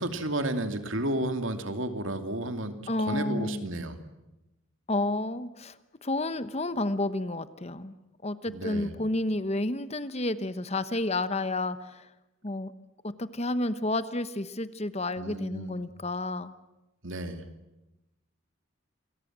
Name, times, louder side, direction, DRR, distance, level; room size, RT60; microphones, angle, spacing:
voice 1, 0.0-2.8 3.1-4.0 8.5-8.9 15.2-15.7 17.0-17.4, right 1 dB, 65° right, 7 dB, 2.7 m, -32 dB
voice 2, 2.9-3.7 4.9-7.9 8.2-12.1 12.4-12.7 13.0-16.5, left 2 dB, 30° left, 13 dB, 1.1 m, -31 dB
28.0 x 22.5 x 7.5 m, 0.97 s
head